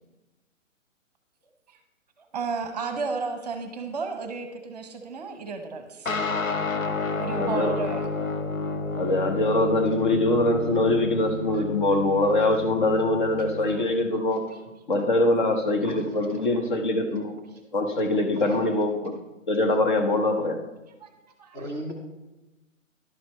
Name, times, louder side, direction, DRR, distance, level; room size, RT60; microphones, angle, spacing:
voice 1, 2.3-6.1 7.2-8.1 11.5-11.6 13.7-13.8 21.0-21.1 21.4-21.7, right 4 dB, 30° right, 6 dB, 0.9 m, -33 dB
sound 1, 6.1-13.9, left 3 dB, 85° left, 0.8 m, -31 dB
voice 2, 7.4-7.8 9.0-14.4 14.9-17.3 17.7-19.1 19.5-20.6, left 2 dB, 40° left, 4 dB, 1.0 m, -23 dB
voice 3, 15.8-16.7 17.9-18.0 18.3-18.6 21.5-21.9, equal, 15° left, -5 dB, 0.7 m, -38 dB
11.0 x 6.0 x 4.3 m, 1.0 s
figure-of-eight pair, 130°, 39 cm